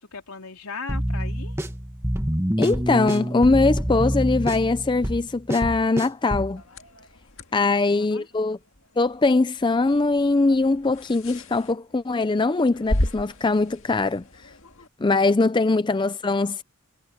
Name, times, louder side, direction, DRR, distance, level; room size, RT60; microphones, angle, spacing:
voice 1, 0.1-1.6 7.5-8.3, left 4 dB, 75° left, 3.6 m, -38 dB
sound 1, 0.9-6.5, equal, 10° right, 1.5 m, -26 dB
voice 2, 2.6-6.6 7.5-8.6 9.0-14.2 15.0-16.6, left 3 dB, 20° left, 0.4 m, -21 dB
sound 2, 6.6-14.9, left 1 dB, 60° left, 2.1 m, -34 dB
head